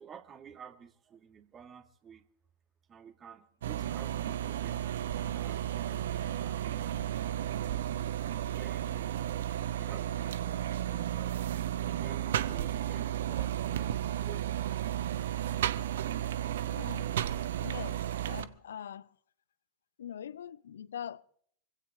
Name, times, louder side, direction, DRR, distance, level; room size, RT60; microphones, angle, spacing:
voice 1, 0.0-2.3 2.9-4.9 5.2-6.7 7.6-9.3 9.8-11.5 11.9-14.7 15.2-15.4, right 7 dB, 25° right, 1.9 m, -53 dB
sound 1, 3.6-18.4, right 11 dB, 60° right, 0.8 m, -33 dB
voice 2, 16.7-17.1 17.6-19.1 20.0-21.2, left 9 dB, 65° left, 0.6 m, -43 dB
25.0 x 16.5 x 3.5 m
figure-of-eight pair, 90°, 0 cm